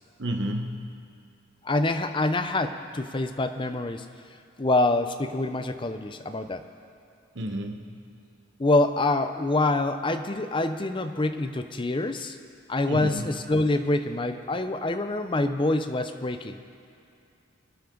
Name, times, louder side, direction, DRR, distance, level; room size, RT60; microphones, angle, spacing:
voice 1, 0.2-0.9 7.3-7.9 12.9-13.3, equal, 60° right, 3 dB, 1.1 m, -31 dB
voice 2, 1.6-4.1 4.6-6.6 8.6-12.4 12.7-16.6, left 2 dB, 25° left, 8 dB, 0.6 m, -26 dB
26.0 x 9.6 x 3.9 m, 2.6 s
head